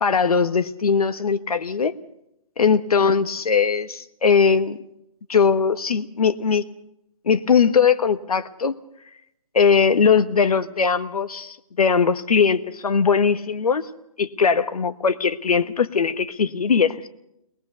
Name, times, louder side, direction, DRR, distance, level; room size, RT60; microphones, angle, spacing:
voice 1, 0.0-1.9 2.6-4.8 5.3-6.7 7.2-8.8 9.5-13.9 14.2-17.1, left 6 dB, 80° left, 11 dB, 1.4 m, -20 dB
21.5 x 20.5 x 6.9 m, 0.82 s
hypercardioid pair, 155°, 19 cm